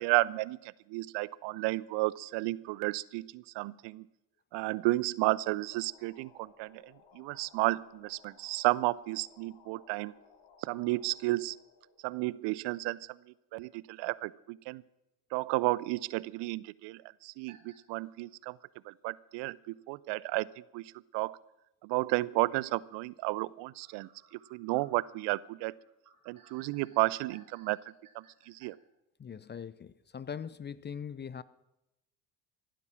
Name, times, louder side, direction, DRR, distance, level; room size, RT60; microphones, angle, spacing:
voice 1, 0.0-4.1 4.5-10.1 10.6-11.6 12.0-13.2 13.5-14.8 15.3-18.6 18.9-21.4 21.8-24.1 24.5-25.7 26.3-27.8 28.1-28.8, right 21 dB, 60° right, 0.6 m, -32 dB
sound 1, 5.4-12.8, left 5 dB, 70° left, 3.2 m, -62 dB
sound 2, 17.5-17.8 18.3-18.4 19.8-19.9 20.5-20.6 20.9-21.0 23.8-28.7, right 5 dB, 40° right, 3.9 m, -61 dB
voice 2, 29.2-31.4, left 7 dB, 20° left, 0.6 m, -41 dB
15.5 x 11.5 x 7.4 m
hypercardioid pair, 65°, 49 cm